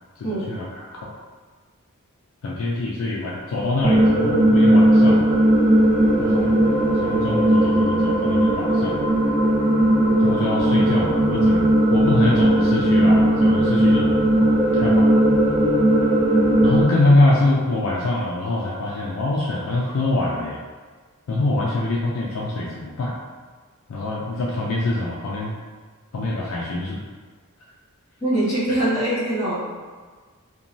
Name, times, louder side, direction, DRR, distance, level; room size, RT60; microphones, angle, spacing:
voice 1, 0.2-0.6 0.9-1.1 2.4-5.2 6.2-6.5 7.0-9.0 10.2-14.1 14.7-15.1 16.6-20.6 21.3-23.1 23.9-25.6 26.1-27.0, left 2 dB, 65° left, -4 dB, 0.4 m, -24 dB
sound 1, 3.8-16.8, right 1 dB, 25° right, 0.9 m, -17 dB
voice 2, 28.2-29.6, right 1 dB, 10° left, -15 dB, 1.3 m, -23 dB
2.9 x 2.2 x 2.5 m, 1.5 s
head